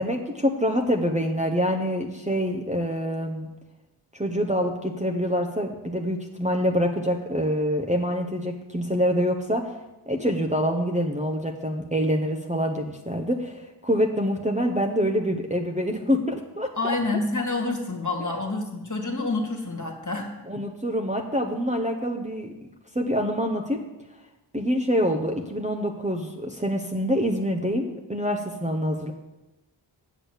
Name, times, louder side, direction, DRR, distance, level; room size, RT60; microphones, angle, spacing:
voice 1, 0.0-3.5 4.1-9.7 10.1-17.0 20.5-22.5 22.9-23.8 24.5-29.1, equal, 15° right, 0 dB, 0.9 m, -26 dB
voice 2, 16.8-20.3, left 3 dB, 35° left, 2 dB, 1.9 m, -28 dB
8.2 x 6.2 x 8.1 m, 0.99 s
wide cardioid pair, 65°, 49 cm